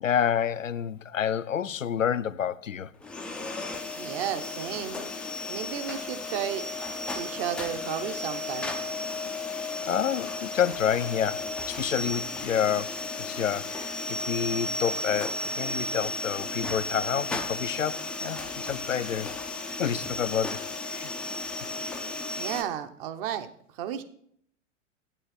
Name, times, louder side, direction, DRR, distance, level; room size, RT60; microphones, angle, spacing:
voice 1, 0.0-2.9 9.5-19.4 19.8-21.1, left 8 dB, 90° left, 0.5 m, -29 dB
sound 1, 3.0-22.6, left 3 dB, 5° left, 0.3 m, -34 dB
voice 2, 3.9-5.0 5.5-6.6 7.1-8.7 22.4-24.0, right 10 dB, 45° right, 1.1 m, -33 dB
8.9 x 8.9 x 4.4 m
figure-of-eight pair, 100°, 38 cm